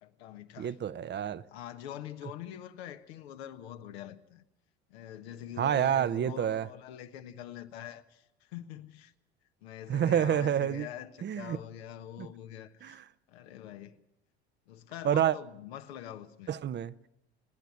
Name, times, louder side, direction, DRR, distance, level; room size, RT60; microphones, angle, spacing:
voice 1, 0.0-0.8 1.5-4.4 4.9-9.1 9.6-13.0 13.3-14.0 14.7-16.6, left 11 dB, 70° left, 1.3 m, -44 dB
voice 2, 0.6-1.4 5.6-6.7 9.9-10.9 11.2-11.6 12.2-12.3 12.8-13.0 15.0-15.4 16.5-16.9, right 9 dB, 35° right, 0.8 m, -28 dB
29.0 x 10.5 x 9.7 m
hypercardioid pair, 70°, 32 cm